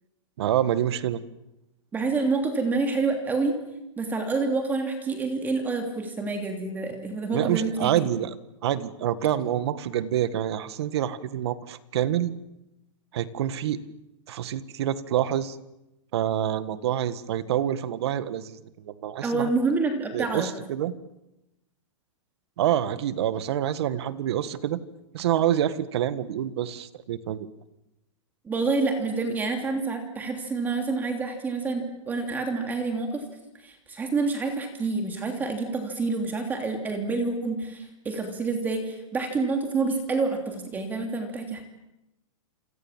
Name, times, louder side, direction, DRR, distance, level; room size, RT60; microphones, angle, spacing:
voice 1, 0.4-1.2 7.3-8.4 8.6-12.3 13.1-13.8 14.3-15.6 16.1-19.5 20.1-20.9 22.6-24.8 25.1-27.5, right 11 dB, 55° right, 14 dB, 1.7 m, -27 dB
voice 2, 1.9-3.5 4.0-8.1 19.2-20.5 28.4-33.2 33.6-41.6, right 3 dB, 10° right, 4 dB, 3.0 m, -28 dB
28.0 x 27.5 x 7.5 m, 0.93 s
hypercardioid pair, 165°, 17 cm